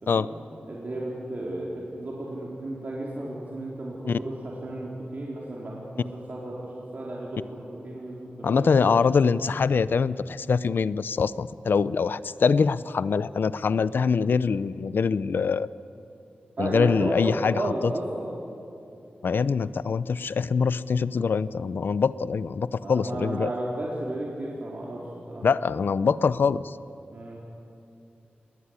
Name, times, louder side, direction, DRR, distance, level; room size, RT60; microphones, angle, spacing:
voice 1, 0.0-0.4 0.7-8.7 16.6-18.3 22.8-25.4 27.1-27.4, right 1 dB, 50° right, -4 dB, 4.4 m, -33 dB
voice 2, 8.4-15.7 16.6-17.9 19.2-23.5 25.4-26.7, left 5 dB, 75° left, 16 dB, 0.6 m, -24 dB
28.0 x 20.5 x 9.8 m, 2.7 s
wide cardioid pair, 125°, 4 cm